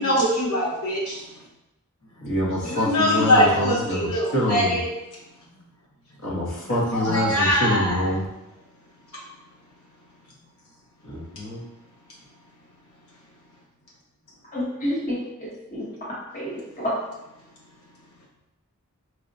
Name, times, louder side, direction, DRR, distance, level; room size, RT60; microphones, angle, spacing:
voice 1, 0.0-1.4 2.6-4.9 7.0-8.1 9.1-9.2, equal, 85° left, -6 dB, 0.9 m, -22 dB
voice 2, 2.2-4.8 6.2-8.3 11.0-11.6, left 1 dB, 60° left, -5 dB, 0.9 m, -26 dB
voice 3, 14.5-15.9 16.3-16.9, equal, 35° left, -7 dB, 0.9 m, -29 dB
4.6 x 2.1 x 2.6 m, 0.93 s
head